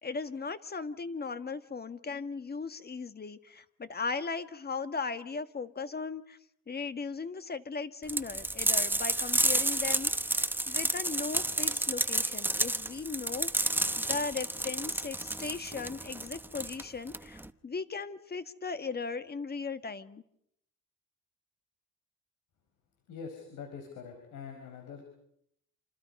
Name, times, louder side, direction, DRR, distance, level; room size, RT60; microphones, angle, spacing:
voice 1, 0.0-6.4 6.7-20.2, left 4 dB, 30° left, 11 dB, 1.6 m, -37 dB
sound 1, 8.1-17.5, right 1 dB, 5° right, 1.0 m, -30 dB
voice 2, 23.1-25.0, left 6 dB, 80° left, 5 dB, 4.7 m, -44 dB
28.0 x 27.5 x 5.4 m, 0.72 s
cardioid pair, 90°, 30 cm